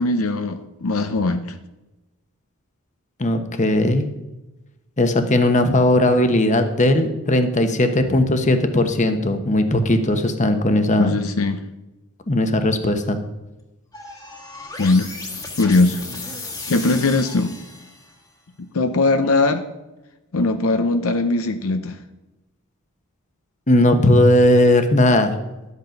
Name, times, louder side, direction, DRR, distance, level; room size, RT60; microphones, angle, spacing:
voice 1, 0.0-1.6 11.0-11.6 14.8-15.1 15.6-16.0 16.7-17.5 18.7-19.6 20.3-22.0, left 3 dB, 70° left, 8 dB, 0.6 m, -20 dB
voice 2, 3.2-4.1 5.0-11.2 12.3-13.2 23.7-25.3, left 1 dB, 35° left, 8 dB, 1.0 m, -17 dB
sound 1, 13.9-18.2, left 2 dB, 15° left, 1.4 m, -35 dB
12.0 x 8.3 x 5.2 m, 1.0 s
head